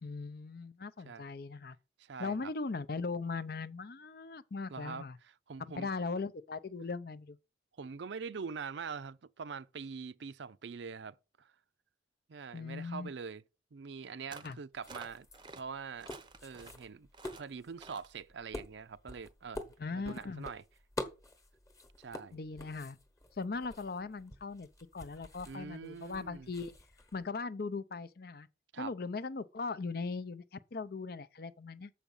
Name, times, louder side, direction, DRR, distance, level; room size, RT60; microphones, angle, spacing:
voice 1, 0.0-1.8 2.2-5.2 5.7-7.4 12.5-13.1 14.4-14.6 19.8-20.5 22.3-23.0 23.4-26.7 27.1-28.5 28.8-31.9, left 4 dB, 55° left, 0.5 m, -39 dB
voice 2, 2.0-2.5 4.7-5.1 5.5-5.9 7.8-11.5 12.3-13.4 13.7-15.3 15.6-16.1 16.4-17.1 17.4-20.6 22.0-22.4 25.4-26.5 28.7-28.9, right 5 dB, 70° right, 0.5 m, -44 dB
sound 1, 14.3-14.6 14.9-15.6 16.0-16.8 17.1-17.5 17.8-18.1, right 3 dB, 25° right, 0.6 m, -50 dB
sound 2, 14.7-27.3, left 1 dB, 15° left, 1.1 m, -48 dB
7.0 x 5.1 x 7.1 m
head